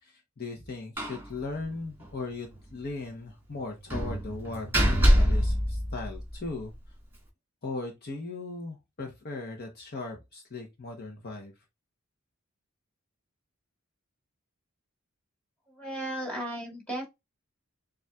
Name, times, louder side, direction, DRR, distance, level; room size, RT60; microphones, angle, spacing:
voice 1, 0.0-6.7 7.6-11.5, left 3 dB, 50° left, 0.9 m, -38 dB
Slam, 1.0-1.3 1.6-1.7 2.0-2.1 3.9-6.5, equal, 10° right, 1.8 m, -24 dB
voice 2, 15.8-17.1, right 1 dB, 5° left, 2.0 m, -35 dB
6.8 x 2.5 x 2.3 m
head